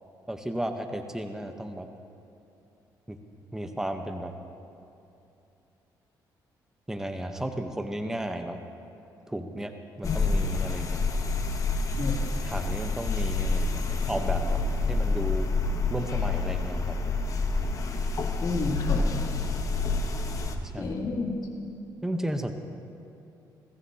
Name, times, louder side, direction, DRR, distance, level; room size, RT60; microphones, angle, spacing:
voice 1, 0.3-1.9 3.1-3.2 3.5-4.3 6.9-8.6 9.3-11.0 12.4-14.6 14.9-15.5 15.9-17.0 20.7-20.9 22.0-22.5, right 1 dB, 5° right, 5 dB, 0.9 m, -34 dB
sound 1, 10.0-20.5, left 3 dB, 45° left, 1.2 m, -28 dB
voice 2, 18.4-19.1 20.8-21.4, left 3 dB, 60° left, -1 dB, 2.7 m, -30 dB
21.5 x 14.5 x 2.8 m, 2.7 s
cardioid pair, 85°, 8 cm